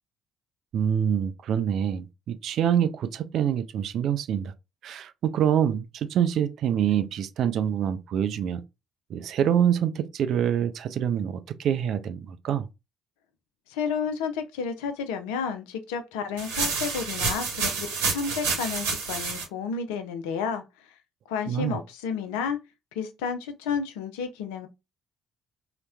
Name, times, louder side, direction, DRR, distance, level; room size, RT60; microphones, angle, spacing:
voice 1, 0.7-4.5 4.8-8.6 9.1-12.7 21.5-21.8, right 9 dB, 55° right, 0.4 m, -26 dB
voice 2, 13.7-20.6 21.3-22.6 23.0-24.7, left 6 dB, 70° left, 0.4 m, -31 dB
sound 1, 16.4-19.4, right 4 dB, 75° right, 1.0 m, -29 dB
4.0 x 2.1 x 2.3 m
figure-of-eight pair, 45°, 0 cm